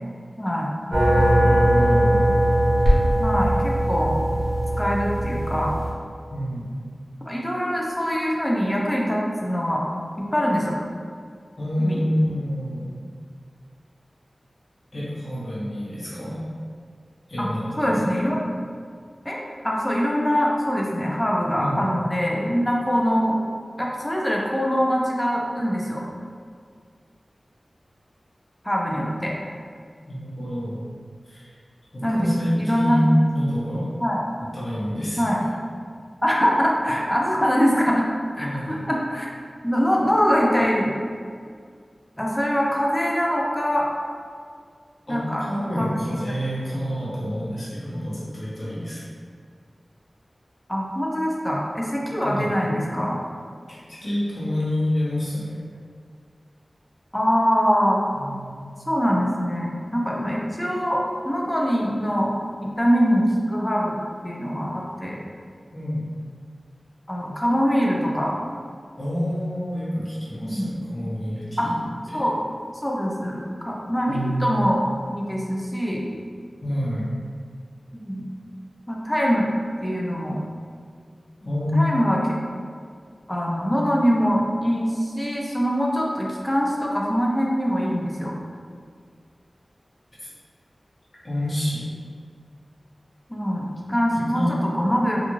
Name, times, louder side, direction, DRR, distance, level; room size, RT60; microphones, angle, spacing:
voice 1, 0.4-0.7 3.2-4.2 4.8-5.7 7.3-9.9 10.2-10.7 11.8-12.0 17.4-17.5 17.8-18.4 19.2-23.4 23.8-26.0 28.6-29.5 32.0-32.3 32.6-33.1 34.0-34.2 35.2-35.4 36.2-38.1 38.4-39.3 39.6-40.9 42.2-43.9 45.1-45.4 45.7-46.3 50.7-53.2 57.1-58.0 58.9-62.3 62.6-63.9 64.2-65.2 67.1-68.4 70.4-70.8 71.6-71.7 72.1-72.4 72.8-74.8 75.1-76.1 77.9-78.2 78.9-79.5 79.8-80.4 81.7-82.2 83.3-88.3 93.3-95.2, equal, 15° left, -3 dB, 0.5 m, -23 dB
sound 1, 0.9-5.9, right 1 dB, 40° right, 0.8 m, -20 dB
voice 2, 1.4-2.3 6.3-6.8 11.6-12.9 14.9-16.4 17.3-18.1 21.6-21.9 30.1-30.8 31.2-31.6 31.9-33.9 34.5-35.4 38.4-38.8 45.1-45.2 45.5-49.1 52.2-52.6 53.7-55.5 58.1-58.6 65.7-66.1 69.0-71.8 72.1-72.2 74.1-74.6 76.6-77.1 81.4-81.8 90.2-90.3 91.2-91.9 94.1-94.5, equal, 45° left, -9 dB, 0.8 m, -27 dB
2.5 x 2.4 x 3.0 m, 2.1 s
wide cardioid pair, 65°, 0 cm